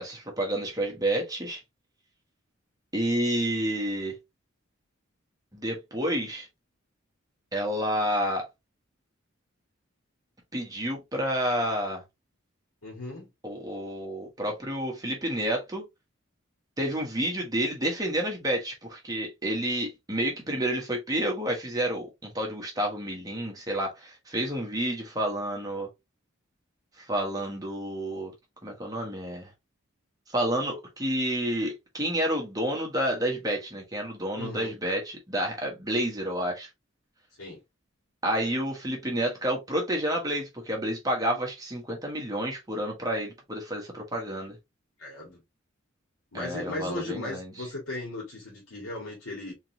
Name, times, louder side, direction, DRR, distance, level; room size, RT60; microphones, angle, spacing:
voice 1, 0.0-1.6 2.9-4.2 5.5-6.5 7.5-8.5 10.5-12.0 13.4-15.9 16.8-25.9 27.0-28.3 28.6-29.5 30.3-36.7 38.2-44.6 46.3-47.4, right 1 dB, 15° right, 1.2 m, -29 dB
voice 2, 12.8-13.3 34.3-34.7 37.4-37.6 45.0-45.4 46.3-49.5, left 2 dB, 85° left, 2.0 m, -37 dB
3.7 x 3.7 x 2.8 m
head